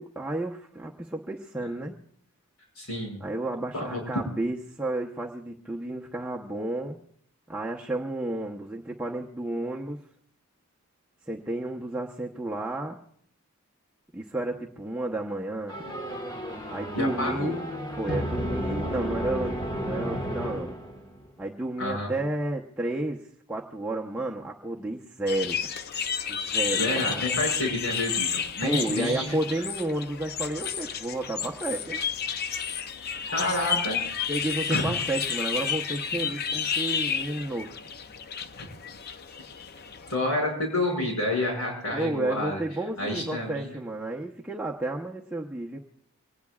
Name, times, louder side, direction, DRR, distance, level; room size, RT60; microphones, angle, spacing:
voice 1, 0.0-2.0 3.2-7.0 7.5-10.0 11.3-13.0 14.1-15.8 16.7-17.6 18.0-20.8 21.4-23.2 23.5-25.6 26.3-27.2 28.6-32.0 34.3-37.8 41.9-45.8, right 2 dB, 5° right, -2 dB, 0.9 m, -31 dB
voice 2, 2.8-3.2 3.7-4.0 16.9-17.6 21.8-22.1 26.7-29.6 33.3-34.0 34.7-35.0 36.7-36.8 38.5-38.7 40.1-42.6 43.0-43.8, left 1 dB, 75° left, 0 dB, 6.1 m, -29 dB
sound 1, 15.7-21.3, equal, 20° left, 1.5 m, -32 dB
sound 2, 25.3-40.2, left 7 dB, 45° left, 0.6 m, -31 dB
25.0 x 19.0 x 2.4 m, 0.63 s
head